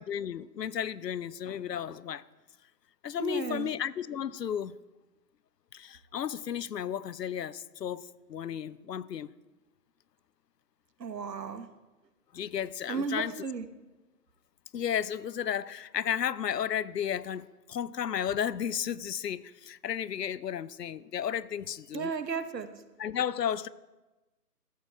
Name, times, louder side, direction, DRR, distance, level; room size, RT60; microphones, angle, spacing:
voice 1, 0.0-2.2 3.0-4.8 5.7-9.3 12.3-13.4 14.7-22.1 23.0-23.7, left 9 dB, 80° left, 0.7 m, -33 dB
voice 2, 3.2-3.7 11.0-11.7 12.9-13.7 21.9-22.7, right 5 dB, 85° right, 1.3 m, -34 dB
14.0 x 8.2 x 4.6 m
hypercardioid pair, 170°, 48 cm